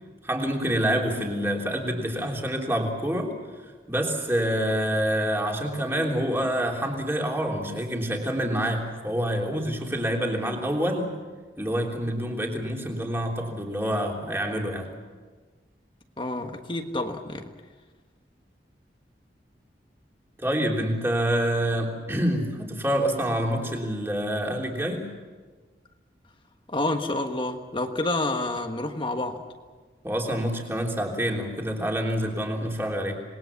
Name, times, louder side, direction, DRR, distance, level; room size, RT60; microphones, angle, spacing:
voice 1, 0.2-3.3 3.9-11.2 11.6-14.9 20.4-25.1 30.0-33.2, equal, 15° right, 0 dB, 3.4 m, -27 dB
voice 2, 16.2-17.5 26.7-29.4, left 2 dB, 30° left, 4 dB, 1.5 m, -28 dB
27.5 x 20.5 x 7.2 m, 1.4 s
head